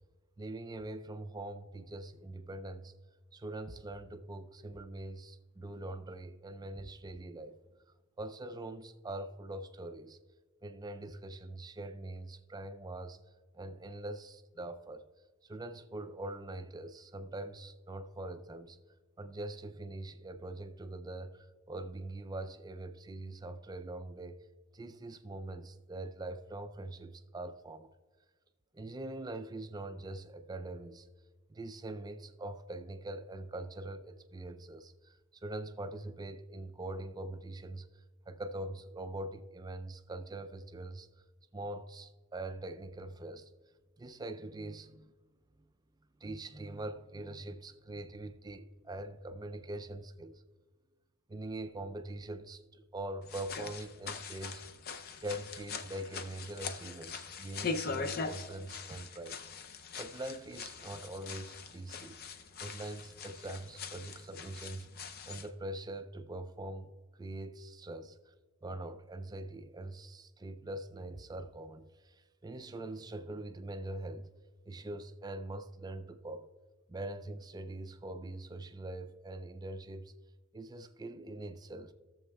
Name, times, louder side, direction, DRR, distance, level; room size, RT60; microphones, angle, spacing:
voice 1, 0.4-2.9 3.3-7.6 8.2-10.2 10.6-13.2 13.5-15.0 15.4-18.8 19.2-24.4 24.7-27.9 28.7-31.1 31.5-37.9 38.3-41.1 41.5-43.5 44.0-45.1 46.2-50.4 51.3-54.6 55.2-59.4 60.0-62.2 62.6-64.9 65.3-66.9 67.2-68.2 68.6-74.3 74.7-76.5 76.9-80.1 80.5-81.9, right 2 dB, 20° right, 0.3 m, -43 dB
sound 1, 53.2-65.5, left 5 dB, 45° left, 0.5 m, -42 dB
16.0 x 7.0 x 2.3 m
head